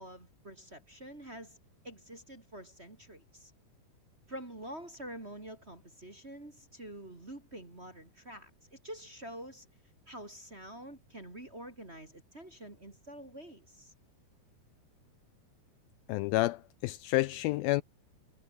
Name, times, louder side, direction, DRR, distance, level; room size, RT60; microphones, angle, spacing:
voice 1, 0.0-1.6 1.8-3.5 4.3-9.7 10.1-13.9, right 1 dB, 20° right, 2.4 m, -47 dB
voice 2, 16.1-17.8, left 18 dB, 80° left, 2.2 m, -29 dB
omnidirectional pair, 4.6 m